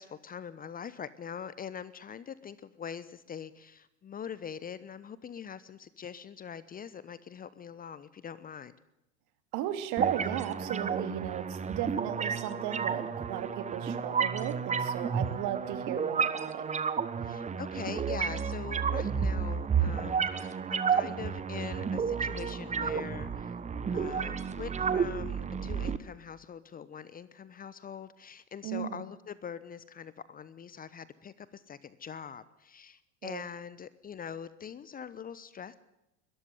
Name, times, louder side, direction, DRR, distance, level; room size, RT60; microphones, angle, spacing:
voice 1, 0.0-8.7 15.1-15.4 17.2-23.6 23.9-35.7, left 7 dB, 25° left, 17 dB, 1.0 m, -43 dB
voice 2, 9.5-16.6 28.6-29.0 33.2-33.4, right 11 dB, 50° right, 10 dB, 2.7 m, -36 dB
sound 1, 10.0-26.0, right 6 dB, 20° right, 1.2 m, -31 dB
21.5 x 14.0 x 9.4 m, 0.89 s
hypercardioid pair, 90°, 37 cm